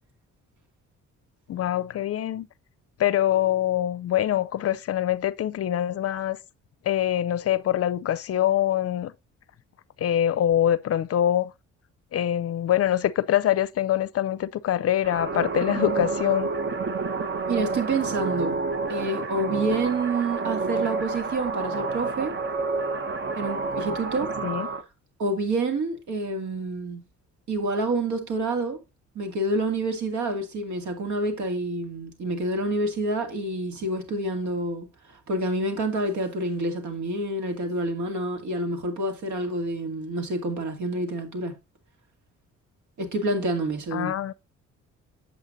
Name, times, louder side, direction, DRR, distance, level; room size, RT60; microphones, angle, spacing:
voice 1, 1.5-2.5 3.0-6.4 6.8-9.1 10.0-11.5 12.1-16.5 24.4-24.7 43.9-44.3, left 11 dB, 50° left, 0.5 m, -24 dB
sound 1, 15.0-24.8, right 4 dB, 40° right, 1.1 m, -29 dB
voice 2, 17.5-18.6 18.9-22.4 23.4-24.3 25.2-27.0 27.5-28.8 29.1-41.6 43.0-44.1, right 2 dB, 70° right, 2.4 m, -28 dB
8.1 x 7.9 x 2.6 m
cardioid pair, 90°, 30 cm